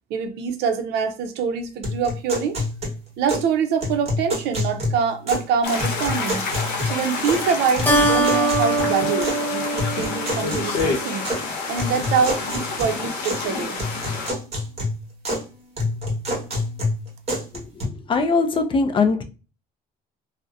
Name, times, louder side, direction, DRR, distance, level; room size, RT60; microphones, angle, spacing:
voice 1, 0.1-2.6 3.2-6.4 6.8-11.2 11.7-13.8, right 6 dB, 80° right, 0.5 m, -25 dB
sound 1, 1.8-3.5 3.8-5.5 5.8-7.5 7.8-9.4 9.8-11.4 11.8-13.5 13.8-15.5 15.8-17.8, left 1 dB, 40° right, 1.1 m, -28 dB
sound 2, 5.6-14.3, left 4 dB, 90° left, 0.8 m, -28 dB
Keyboard (musical), 7.9-10.7, right 2 dB, 10° left, 0.7 m, -22 dB
voice 2, 18.1-19.2, left 4 dB, 30° left, 0.4 m, -20 dB
2.6 x 2.0 x 2.3 m
cardioid pair, 110°, 17 cm